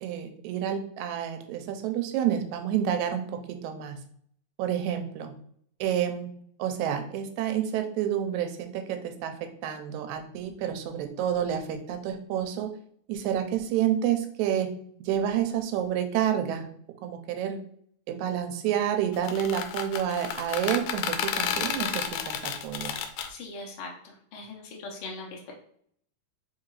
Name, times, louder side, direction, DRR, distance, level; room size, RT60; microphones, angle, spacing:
voice 1, 0.0-3.3 3.6-4.0 4.6-5.3 5.8-6.3 6.6-12.7 13.1-14.7 15.1-16.7 17.0-17.6 18.1-23.0, right 10 dB, 85° right, 6 dB, 2.0 m, -29 dB
sound 1, 19.1-23.3, left 8 dB, 85° left, 1.9 m, -31 dB
voice 2, 23.3-23.9 24.3-25.5, left 3 dB, 70° left, -1 dB, 1.3 m, -40 dB
4.6 x 3.7 x 3.0 m, 0.63 s
omnidirectional pair, 3.4 m